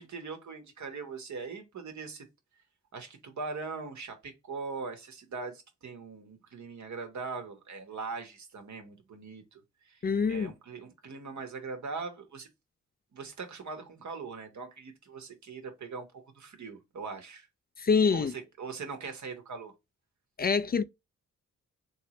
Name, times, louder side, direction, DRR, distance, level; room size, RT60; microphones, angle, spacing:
voice 1, 0.0-2.2 2.9-10.0 10.3-12.5 13.1-17.5 18.1-19.7, right 4 dB, 65° right, 1.2 m, -41 dB
voice 2, 10.0-10.5 17.8-18.3 20.4-20.8, left 5 dB, 30° left, 0.4 m, -25 dB
3.2 x 3.1 x 2.9 m
cardioid pair, 55°, 32 cm